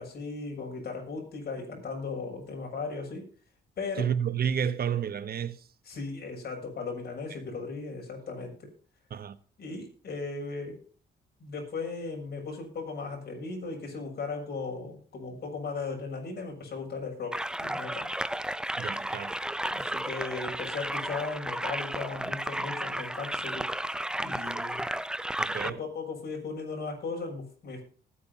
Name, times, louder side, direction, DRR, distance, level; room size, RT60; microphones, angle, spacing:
voice 1, 0.0-3.3 3.8-4.1 5.9-8.7 9.6-10.8 11.4-18.1 19.7-23.8 24.1-24.8 25.6-27.8, left 4 dB, 55° left, 7.0 m, -37 dB
voice 2, 4.0-5.7 9.1-9.4 18.8-19.4 25.4-25.8, right 8 dB, 50° right, 1.1 m, -31 dB
sound 1, 17.3-25.7, right 1 dB, 5° right, 0.6 m, -33 dB
20.0 x 9.5 x 2.9 m
cardioid pair, 90°, 20 cm